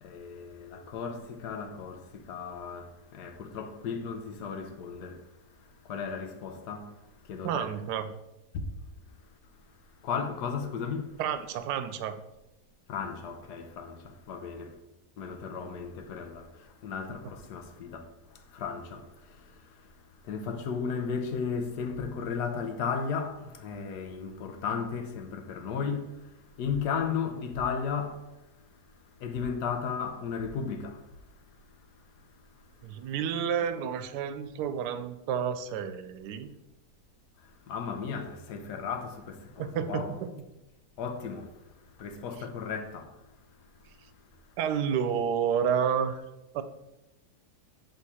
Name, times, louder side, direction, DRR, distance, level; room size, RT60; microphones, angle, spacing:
voice 1, 0.0-5.2 5.9-6.9 7.3-7.7 8.5-8.6 10.0-11.1 12.9-14.7 15.2-16.5 16.8-18.0 18.5-19.0 20.3-26.1 26.6-28.2 29.2-31.0 37.7-40.1 41.0-41.5 42.0-43.1, left 6 dB, 80° left, 1.3 m, -34 dB
voice 2, 7.4-8.1 11.2-12.2 32.8-36.5 39.6-40.3 44.6-46.1 46.5-46.6, right 8 dB, 85° right, 1.2 m, -30 dB
6.5 x 3.6 x 4.2 m
omnidirectional pair, 1.7 m